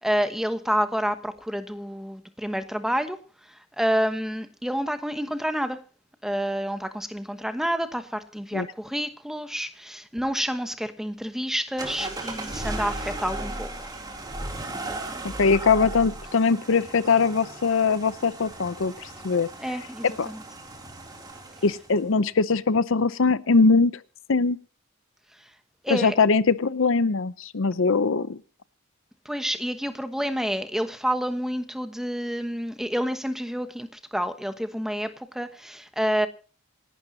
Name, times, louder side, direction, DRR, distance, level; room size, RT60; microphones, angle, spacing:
voice 1, 0.0-3.2 3.5-5.8 6.2-13.9 14.9-15.3 19.6-20.4 25.8-26.1 29.2-36.3, equal, ahead, 1.1 m, -29 dB
sound 1, 11.8-22.0, right 2 dB, 20° right, 2.9 m, -36 dB
voice 2, 15.2-19.5 20.0-20.3 21.6-23.9 24.3-24.6 25.9-28.4, left 4 dB, 65° left, 0.7 m, -22 dB
27.5 x 12.0 x 2.8 m
head